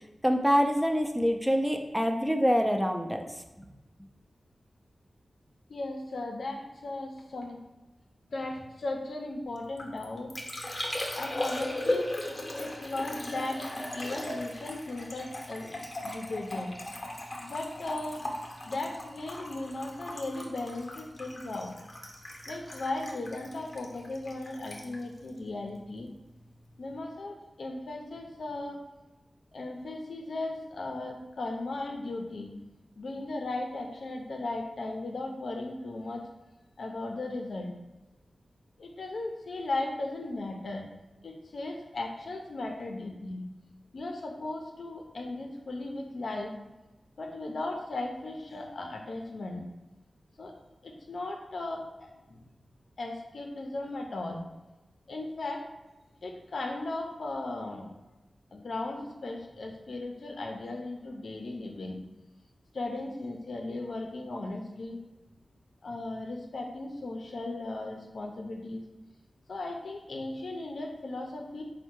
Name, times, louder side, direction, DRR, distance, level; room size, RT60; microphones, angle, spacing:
voice 1, 0.2-3.3, equal, 5° right, 3 dB, 0.4 m, -25 dB
voice 2, 5.7-7.6 8.3-10.3 11.1-12.1 12.5-13.6 13.9-15.8 16.0-16.7 17.4-18.2 18.6-21.7 22.5-26.1 26.8-28.8 29.5-32.5 33.0-36.2 36.8-37.7 38.8-40.9 41.2-43.4 43.9-46.5 47.2-49.7 50.4-50.5 50.8-52.4 53.0-54.4 55.1-55.6 56.2-57.9 58.5-62.0 62.7-65.0 65.8-68.8 69.5-71.6, left 2 dB, 70° left, 2 dB, 0.5 m, -36 dB
Liquid, 9.6-26.2 26.4-27.0, left 1 dB, 25° left, 0.7 m, -38 dB
4.3 x 2.1 x 4.5 m, 1.1 s
wide cardioid pair, 115°, 0 cm